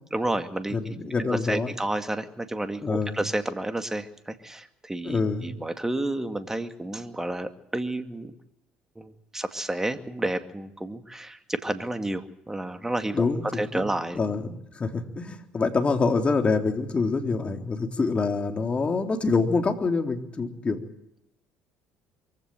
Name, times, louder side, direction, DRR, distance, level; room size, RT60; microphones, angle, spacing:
voice 1, 0.1-0.9 1.3-8.3 9.0-13.3 13.5-14.2, right 1 dB, 10° right, 9 dB, 2.3 m, -31 dB
voice 2, 0.7-1.7 2.8-3.2 5.0-5.5 13.1-13.9 14.1-20.8, left 4 dB, 30° left, 5 dB, 3.6 m, -26 dB
24.0 x 16.0 x 7.8 m, 0.80 s
hypercardioid pair, 65°, 4 cm